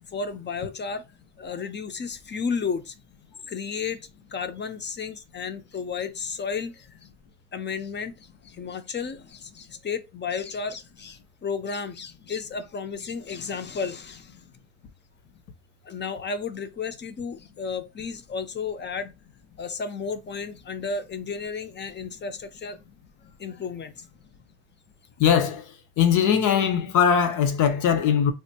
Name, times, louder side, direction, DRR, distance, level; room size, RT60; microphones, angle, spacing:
voice 1, 0.1-1.0 1.4-2.9 3.4-4.0 4.3-6.9 7.5-14.4 15.8-19.1 19.6-22.8 23.4-24.1, left 5 dB, 35° left, 0.5 m, -33 dB
voice 2, 25.2-25.6 26.0-28.3, left 8 dB, 80° left, 0.7 m, -20 dB
3.4 x 2.5 x 2.8 m
cardioid pair, 90°, 30 cm